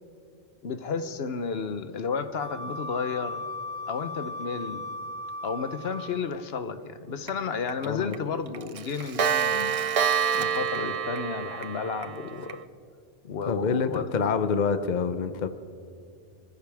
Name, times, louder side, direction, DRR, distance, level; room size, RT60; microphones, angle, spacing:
voice 1, 0.6-3.5 3.9-4.8 5.4-9.8 10.3-12.6 13.2-14.3, left 5 dB, 75° left, 10 dB, 1.1 m, -32 dB
Wind instrument woodwind instrument, 2.4-6.4, left 2 dB, 5° left, 2.7 m, -37 dB
Clock, 7.3-7.4 7.7-7.9 8.1-8.2 8.5-12.6, right 7 dB, 50° right, 0.4 m, -27 dB
voice 2, 7.8-8.2 13.5-15.5, left 5 dB, 50° left, 10 dB, 0.8 m, -26 dB
25.5 x 14.5 x 3.5 m, 2.6 s
omnidirectional pair, 1.0 m